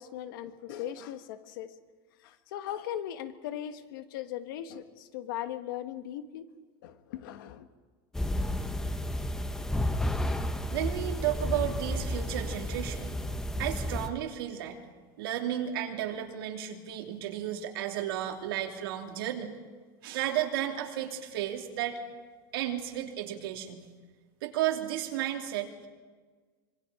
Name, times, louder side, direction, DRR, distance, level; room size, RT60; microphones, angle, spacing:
voice 1, 0.0-1.7 2.2-6.5 6.8-7.7, left 11 dB, 65° left, 9 dB, 1.5 m, -39 dB
sound 1, 8.1-14.1, left 1 dB, 5° left, 0.8 m, -32 dB
voice 2, 10.7-13.1 13.6-14.8 15.2-19.6 20.0-22.0 22.5-23.8 24.4-25.9, right 11 dB, 85° right, 2 dB, 2.9 m, -33 dB
25.5 x 23.5 x 5.1 m, 1.4 s
supercardioid pair, 175°, 12 cm